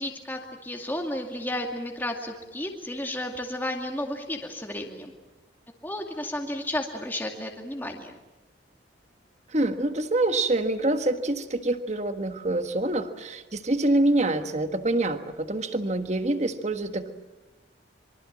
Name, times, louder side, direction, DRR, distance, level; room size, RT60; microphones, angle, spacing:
voice 1, 0.0-5.1 5.8-8.2, left 1 dB, 10° left, 2 dB, 2.3 m, -33 dB
voice 2, 9.5-17.1, right 2 dB, 35° right, 8 dB, 1.5 m, -26 dB
26.0 x 24.5 x 7.5 m, 1.1 s
head